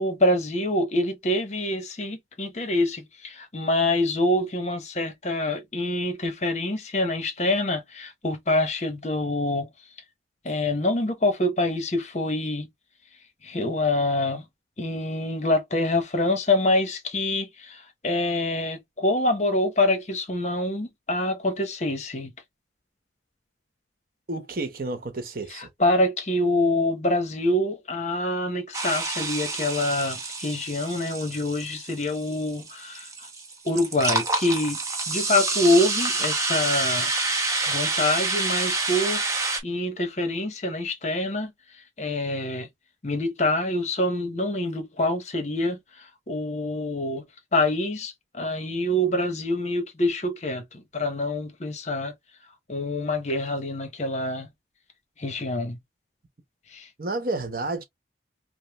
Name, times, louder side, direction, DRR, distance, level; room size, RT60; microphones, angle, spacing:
voice 1, 0.0-9.7 10.4-12.7 13.4-14.4 14.8-22.3 25.5-33.3 33.6-34.8 35.1-37.1 37.7-39.2 39.6-41.5 42.0-42.7 43.0-47.2 47.5-52.1 52.7-54.5 55.2-55.8 56.7-56.9, left 1 dB, 40° left, 0.9 m, -26 dB
voice 2, 24.3-25.7 57.0-57.8, right 2 dB, 50° right, 0.9 m, -30 dB
sound 1, 28.7-39.6, right 3 dB, 20° right, 0.8 m, -28 dB
5.4 x 2.0 x 2.9 m
head